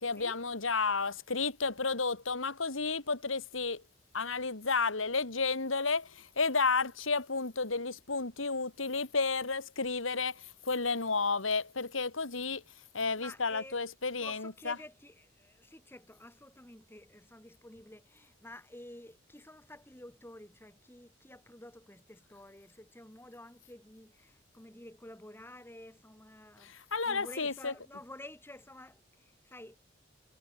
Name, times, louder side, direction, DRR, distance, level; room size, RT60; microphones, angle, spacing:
voice 1, 0.0-3.8 4.1-12.6 12.9-14.8 26.6-27.7, left 4 dB, 85° left, 2.5 m, -32 dB
voice 2, 13.2-13.8 14.2-26.7 27.1-29.8, left 1 dB, 10° left, 4.0 m, -51 dB
head